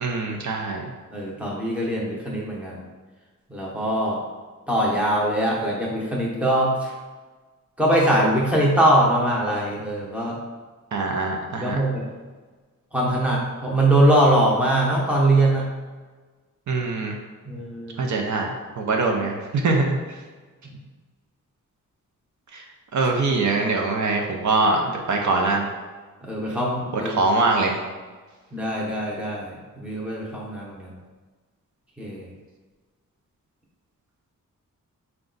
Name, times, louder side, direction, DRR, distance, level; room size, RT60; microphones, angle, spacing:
voice 1, 0.0-0.8 10.9-11.8 16.7-17.2 18.0-20.2 22.5-22.7 22.9-25.7 26.9-27.8, right 3 dB, 65° right, 1 dB, 0.6 m, -23 dB
voice 2, 1.1-2.7 3.5-4.2 4.7-6.9 7.8-10.4 11.6-12.0 12.9-15.7 17.5-18.1 20.7-20.8 26.2-27.1 28.5-30.9 32.0-32.3, right 1 dB, 5° right, -5 dB, 0.7 m, -22 dB
5.0 x 2.3 x 3.8 m, 1.4 s
wide cardioid pair, 180°, 32 cm